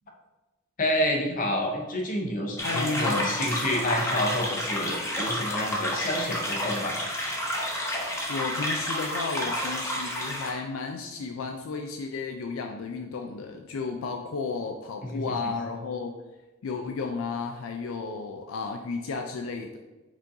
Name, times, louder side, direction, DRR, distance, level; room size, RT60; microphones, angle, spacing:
voice 1, 0.8-7.0 15.0-15.4, left 1 dB, 40° left, 1 dB, 0.8 m, -29 dB
voice 2, 2.6-3.3 8.3-16.1 16.6-19.8, left 4 dB, 85° left, 4 dB, 0.4 m, -33 dB
sound 1, 2.6-10.5, left 1 dB, 15° left, 0.8 m, -30 dB
4.9 x 3.8 x 2.7 m, 1.1 s
head